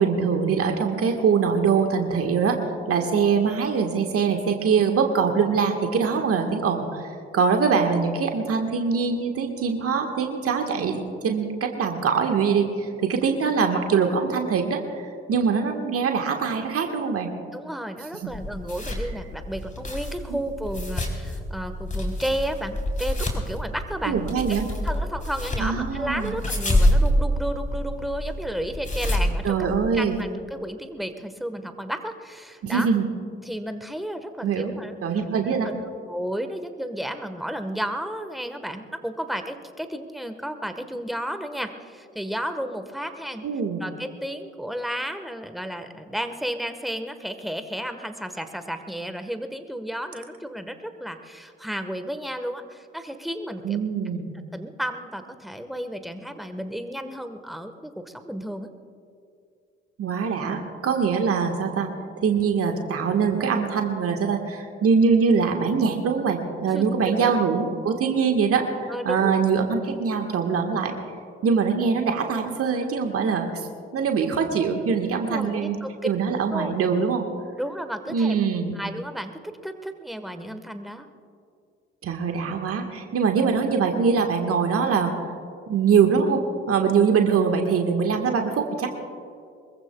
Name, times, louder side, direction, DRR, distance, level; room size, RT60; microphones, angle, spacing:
voice 1, 0.0-2.6 2.9-7.0 7.3-17.3 20.3-20.4 24.0-24.7 25.6-26.3 29.4-30.2 32.6-33.1 34.4-34.7 35.0-35.7 43.4-43.8 53.6-54.3 60.0-61.9 62.2-70.9 71.4-73.5 73.9-75.8 76.0-77.2 78.1-78.7 82.0-85.1 85.7-88.9, right 5 dB, 50° right, 4 dB, 1.6 m, -23 dB
voice 2, 17.5-24.2 24.8-29.7 29.9-32.9 33.4-35.0 35.4-43.5 43.8-53.8 54.5-58.7 66.7-67.4 68.9-69.4 75.1-75.9 76.5-76.8 77.6-78.4 78.7-81.1, equal, ahead, 8 dB, 1.4 m, -33 dB
sound 1, 18.3-30.2, equal, 25° left, 3.8 m, -27 dB
24.0 x 22.0 x 2.3 m, 2.4 s
figure-of-eight pair, 45°, 30 cm